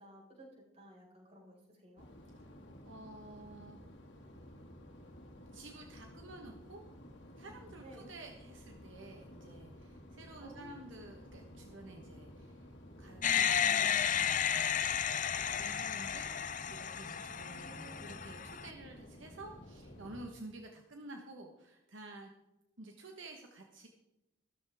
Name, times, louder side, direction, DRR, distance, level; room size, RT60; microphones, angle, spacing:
voice 1, 0.0-2.1 7.8-8.1 10.4-10.8 17.5-18.2, right 1 dB, 30° right, -3 dB, 5.3 m, -55 dB
sound 1, 2.0-20.3, left 1 dB, 60° left, 2.3 m, -53 dB
voice 2, 2.8-3.8 5.5-6.8 7.4-12.7 13.0-14.8 15.1-22.3 22.8-23.9, right 2 dB, 70° right, 2 dB, 1.3 m, -51 dB
sound 2, 13.2-18.7, left 8 dB, 40° left, 0.6 m, -33 dB
14.5 x 13.5 x 3.6 m, 0.95 s
head